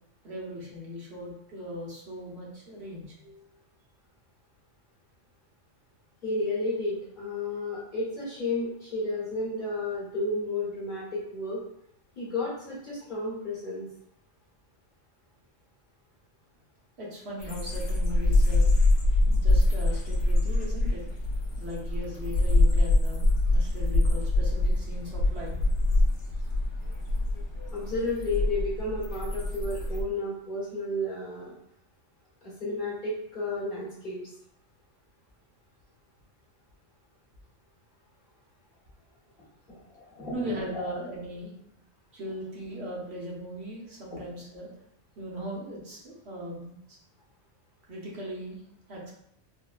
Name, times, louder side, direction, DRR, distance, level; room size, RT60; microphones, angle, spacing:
voice 1, 0.2-3.6 17.0-18.7 19.3-21.0 21.6-25.6 40.3-41.5 42.1-44.7 45.2-47.0 47.9-48.6 48.9-49.1, equal, 65° right, -4 dB, 1.0 m, -39 dB
voice 2, 6.2-11.6 12.2-13.9 27.7-31.5 32.4-34.2 39.7-40.9 44.1-44.2, left 2 dB, 40° left, -6 dB, 1.1 m, -32 dB
sound 1, 17.4-30.0, left 2 dB, 70° left, 1.0 m, -25 dB
3.6 x 2.1 x 2.3 m, 0.76 s
omnidirectional pair, 1.3 m